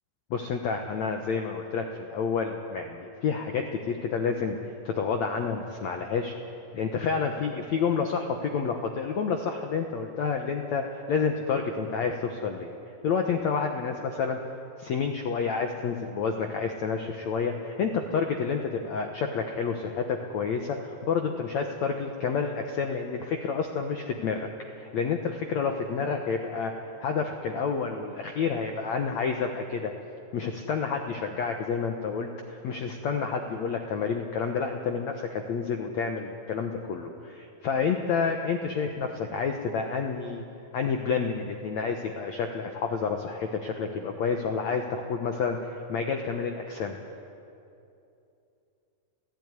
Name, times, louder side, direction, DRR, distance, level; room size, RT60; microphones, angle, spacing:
voice 1, 0.3-4.6 4.8-6.3 6.7-12.7 13.0-14.4 14.8-24.5 24.7-26.7 27.0-29.9 30.3-40.4 40.7-47.0, left 5 dB, 70° left, 4 dB, 1.7 m, -29 dB
28.5 x 15.5 x 9.7 m, 2.7 s
omnidirectional pair, 4.8 m